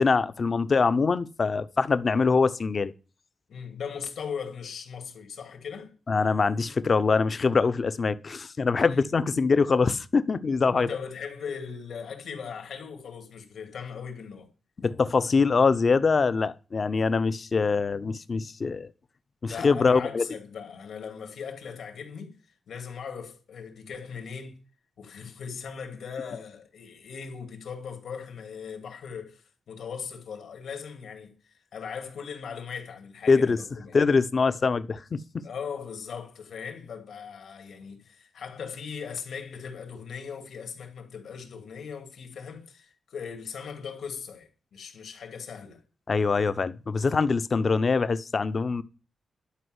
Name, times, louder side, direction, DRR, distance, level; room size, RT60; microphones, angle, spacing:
voice 1, 0.0-2.9 6.1-10.9 14.8-18.9 19.4-20.2 33.3-33.6 33.9-35.2 46.1-48.8, left 4 dB, 35° left, 0.6 m, -23 dB
voice 2, 3.5-5.9 8.8-9.3 10.7-14.5 19.5-22.3 22.7-24.6 25.0-34.0 35.4-45.8, left 6 dB, 80° left, 2.6 m, -39 dB
11.5 x 5.2 x 7.9 m
wide cardioid pair, 155°, 0 cm